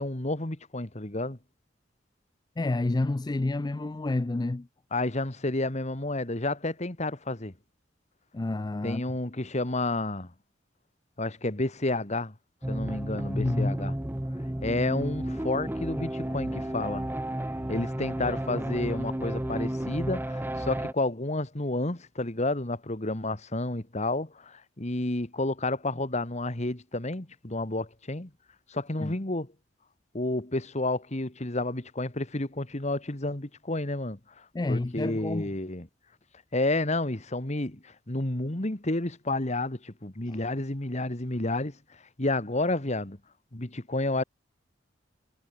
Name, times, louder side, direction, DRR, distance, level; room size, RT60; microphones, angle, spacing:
voice 1, 0.0-1.4 4.9-7.5 8.8-10.3 11.2-12.3 12.7-13.9 14.6-17.1 17.7-28.3 28.7-29.5 30.1-35.9 36.5-41.8 42.2-43.2 43.5-44.2, left 2 dB, 40° left, 1.9 m, -30 dB
voice 2, 2.6-4.7 8.3-9.0 12.7-12.8 13.3-13.8 29.0-29.1 34.5-35.5 40.3-40.4, left 2 dB, 20° left, 0.4 m, -29 dB
sound 1, 12.6-20.9, right 1 dB, 10° right, 0.8 m, -32 dB
head